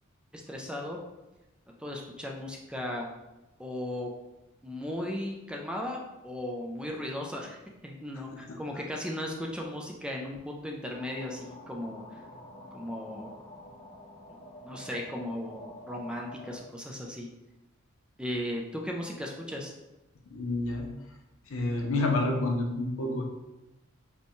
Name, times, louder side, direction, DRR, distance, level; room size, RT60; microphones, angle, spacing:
voice 1, 0.3-1.0 1.8-3.1 3.6-4.1 4.6-7.6 7.8-12.2 12.7-13.3 14.3-14.4 14.6-17.3 18.2-19.7, left 1 dB, 5° right, 0 dB, 0.4 m, -36 dB
sound 1, 10.9-16.6, left 1 dB, 55° left, 1.4 m, -48 dB
voice 2, 20.3-20.9 21.5-23.2, left 2 dB, 85° left, 1 dB, 0.7 m, -29 dB
5.3 x 2.3 x 3.0 m, 1.0 s
head